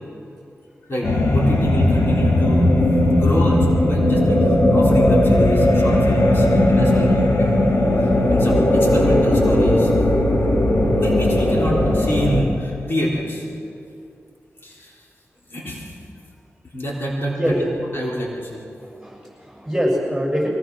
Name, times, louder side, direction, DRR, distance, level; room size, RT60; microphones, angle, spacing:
voice 1, 0.9-2.7 3.0-7.6 8.0-9.9 10.4-10.5 10.9-13.5 14.6-15.0 15.5-15.9 16.7-17.6 17.9-18.7, equal, 50° left, -4 dB, 3.5 m, -26 dB
sound 1, 1.0-12.4, left 1 dB, 70° left, 2.7 m, -17 dB
voice 2, 18.8-20.5, equal, 5° right, -2 dB, 6.9 m, -24 dB
23.5 x 18.5 x 6.2 m, 2.6 s
wide cardioid pair, 115°, 5 cm